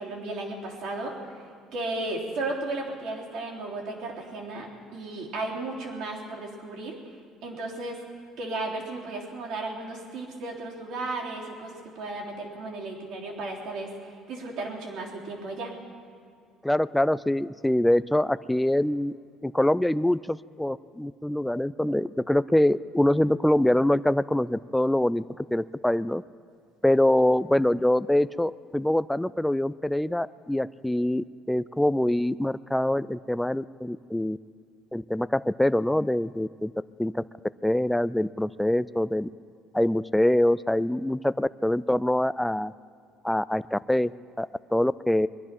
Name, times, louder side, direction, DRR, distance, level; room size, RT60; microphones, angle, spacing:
voice 1, 0.0-7.0 7.4-8.0 8.4-15.7, right 2 dB, 70° right, -2 dB, 3.4 m, -34 dB
voice 2, 16.6-19.1 19.4-26.2 26.8-34.4 34.9-36.7 37.0-37.2 37.6-39.3 39.7-42.7 43.2-44.1 44.4-45.3, left 1 dB, 5° left, 16 dB, 0.3 m, -24 dB
22.0 x 11.0 x 6.0 m, 2.1 s
supercardioid pair, 95°, 0 cm